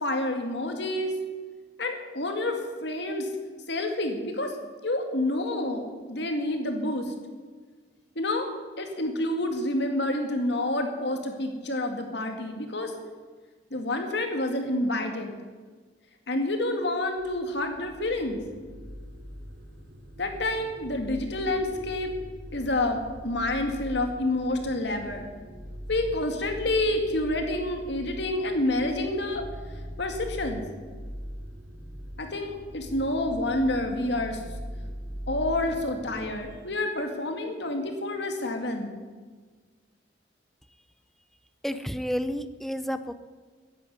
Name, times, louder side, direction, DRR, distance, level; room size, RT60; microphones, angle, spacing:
voice 1, 0.0-1.1 1.8-3.3 3.7-4.5 4.8-7.1 8.2-12.9 13.7-15.3 16.3-18.4 20.2-22.1 22.5-25.3 25.9-29.4 30.0-30.6 32.2-34.4 35.3-39.0, left 1 dB, 65° left, 4 dB, 2.3 m, -28 dB
sound 1, 17.2-36.4, equal, 80° right, 4.1 m, -41 dB
voice 2, 41.6-43.1, equal, ahead, 11 dB, 0.6 m, -30 dB
11.5 x 11.0 x 9.3 m, 1.5 s
head